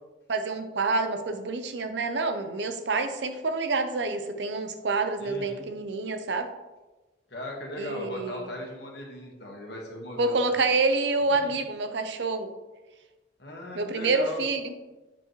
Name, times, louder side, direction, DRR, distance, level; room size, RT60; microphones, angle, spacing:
voice 1, 0.3-6.5 7.8-8.5 10.2-12.5 13.7-14.7, right 3 dB, 70° right, 8 dB, 0.6 m, -27 dB
voice 2, 5.2-5.7 7.3-10.4 13.4-14.4, left 1 dB, 65° left, -1 dB, 1.4 m, -38 dB
7.2 x 5.2 x 3.1 m, 1.1 s
head